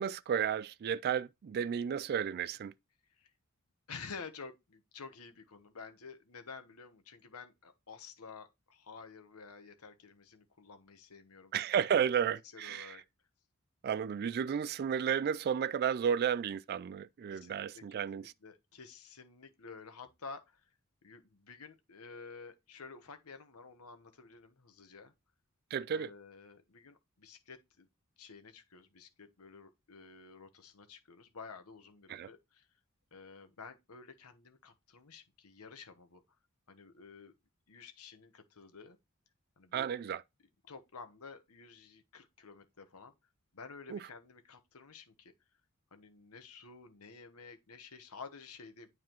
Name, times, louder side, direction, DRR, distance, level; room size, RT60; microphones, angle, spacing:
voice 1, 0.0-2.7 11.5-13.0 13.8-18.3 25.7-26.1 32.1-32.3 39.7-40.2 43.9-44.0, right 8 dB, 45° right, 0.3 m, -33 dB
voice 2, 3.9-11.5 12.5-13.0 17.3-20.7 21.0-25.1 25.9-27.9 28.2-32.7 33.1-36.2 36.7-37.3 37.7-39.0 39.6-39.9 40.6-43.1 43.5-45.3 45.9-48.9, left 5 dB, 90° left, 1.1 m, -51 dB
9.1 x 4.8 x 3.0 m
head